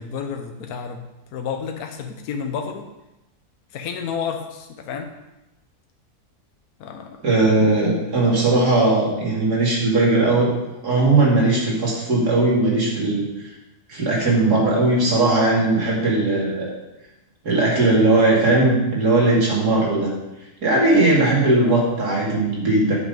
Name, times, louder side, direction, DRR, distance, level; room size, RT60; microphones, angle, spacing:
voice 1, 0.0-2.9 3.7-5.1 6.8-7.2 21.6-21.9, left 6 dB, 70° left, 5 dB, 1.3 m, -31 dB
voice 2, 7.2-10.5 10.8-13.2 13.9-16.7 17.4-20.1 20.6-22.9, right 2 dB, 90° right, -4 dB, 3.2 m, -18 dB
9.9 x 6.1 x 5.2 m, 0.97 s
omnidirectional pair, 1.6 m